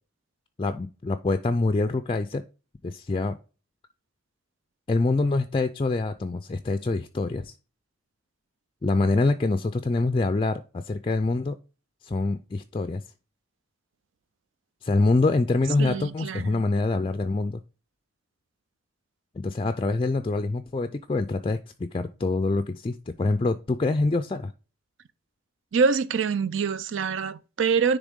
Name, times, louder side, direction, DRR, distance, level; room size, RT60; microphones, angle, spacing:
voice 1, 0.6-2.4 2.8-3.4 4.9-7.5 8.8-11.6 12.0-13.0 14.8-17.6 19.4-24.5, left 3 dB, 25° left, 0.4 m, -25 dB
voice 2, 15.8-16.6 25.7-28.0, right 5 dB, 70° right, 0.4 m, -25 dB
10.0 x 3.4 x 3.6 m
head